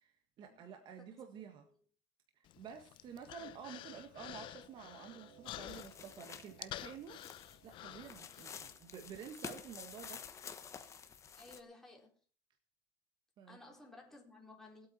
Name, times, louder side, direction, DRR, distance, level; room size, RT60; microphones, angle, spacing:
voice 1, 0.0-1.7 2.3-7.2 7.6-10.3 13.4-13.6, right 7 dB, 45° right, 5 dB, 1.7 m, -50 dB
Human voice, 2.5-8.7, left 14 dB, 50° left, 0.7 m, -50 dB
sound 1, 4.4-10.7, right 8 dB, 70° right, 4.8 m, -68 dB
sound 2, 5.5-11.6, left 7 dB, 30° left, 1.4 m, -50 dB
voice 2, 11.3-12.2 13.5-14.9, left 2 dB, 5° left, -1 dB, 3.9 m, -56 dB
20.0 x 8.5 x 4.4 m, 0.42 s
supercardioid pair, 120°, 11 cm